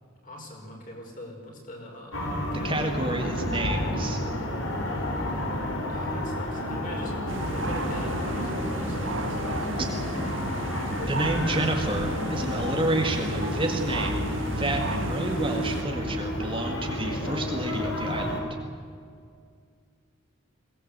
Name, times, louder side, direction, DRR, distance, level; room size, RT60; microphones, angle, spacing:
voice 1, 0.2-3.0 5.9-7.2 7.5-10.0, left 1 dB, 40° left, 0 dB, 5.4 m, -42 dB
sound 1, 2.1-18.4, left 1 dB, 70° left, 4.3 m, -31 dB
voice 2, 2.6-4.2 11.0-14.2 14.5-18.5, right 2 dB, 25° right, 3 dB, 1.9 m, -30 dB
sound 2, 7.3-15.8, right 2 dB, 70° right, 1.8 m, -34 dB
22.5 x 18.5 x 8.0 m, 2.2 s
head